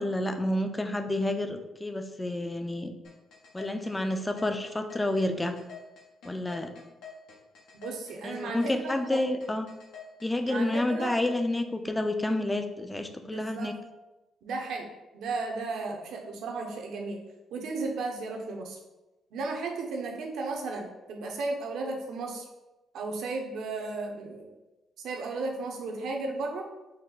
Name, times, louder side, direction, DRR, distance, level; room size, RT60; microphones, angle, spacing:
voice 1, 0.0-2.9 3.5-5.6 6.2-6.7 8.2-9.7 10.2-13.7, left 1 dB, 15° left, 7 dB, 0.4 m, -29 dB
sound 1, 3.0-11.4, left 6 dB, 85° left, 1.0 m, -46 dB
voice 2, 7.7-9.2 10.5-11.2 13.3-13.7 14.4-14.9 15.1-17.2 17.5-18.8 19.3-22.4 22.9-24.5 25.0-26.6, right 3 dB, 75° right, 1 dB, 0.7 m, -34 dB
4.2 x 2.2 x 3.9 m, 1.0 s
cardioid pair, 90°, 0 cm